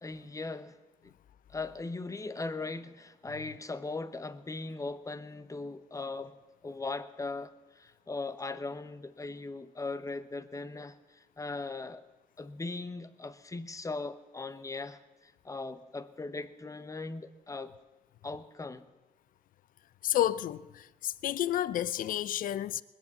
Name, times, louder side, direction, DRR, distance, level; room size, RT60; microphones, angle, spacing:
voice 1, 0.0-0.8 1.0-1.1 1.5-6.4 6.6-12.0 12.4-17.7 18.2-18.8, left 3 dB, 20° left, 0.9 m, -39 dB
voice 2, 20.0-22.8, left 12 dB, 70° left, 0.5 m, -30 dB
20.5 x 8.3 x 7.3 m
cardioid pair, 75°, 15 cm